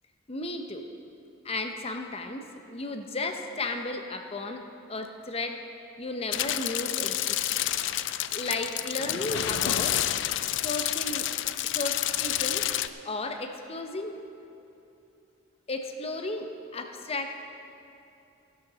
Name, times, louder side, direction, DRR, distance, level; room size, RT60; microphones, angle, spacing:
voice 1, 0.3-0.8 1.4-2.4 2.7-4.6 4.9-5.6 6.0-7.7 8.3-10.0 10.6-11.3 11.7-12.7 13.0-14.1 15.7-17.5, left 2 dB, 30° left, 5 dB, 0.7 m, -34 dB
sound 1, 6.3-12.9, left 13 dB, 65° left, 0.3 m, -29 dB
15.5 x 11.5 x 4.0 m, 2.8 s
head